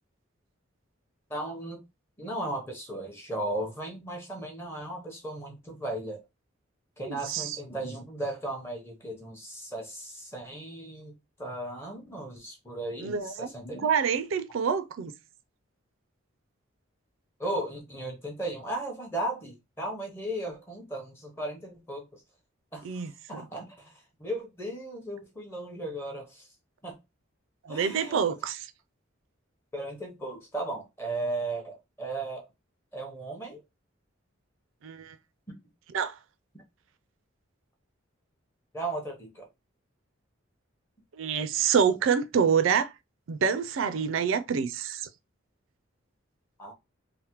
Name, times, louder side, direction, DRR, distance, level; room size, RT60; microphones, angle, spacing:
voice 1, 1.3-1.8 2.2-6.2 7.0-13.9 17.4-22.2 22.7-26.5 26.8-27.0 27.7-28.3 29.7-32.4 32.9-33.6 35.5-35.7 38.7-39.5 46.6-46.7, right 1 dB, 10° left, 0.7 m, -36 dB
voice 2, 7.0-7.6 13.0-13.5 13.8-15.1 22.8-23.4 27.6-28.6 34.8-35.2 35.9-36.2 41.1-42.9 43.3-45.1, right 7 dB, 75° right, 0.4 m, -27 dB
3.3 x 2.0 x 2.9 m
head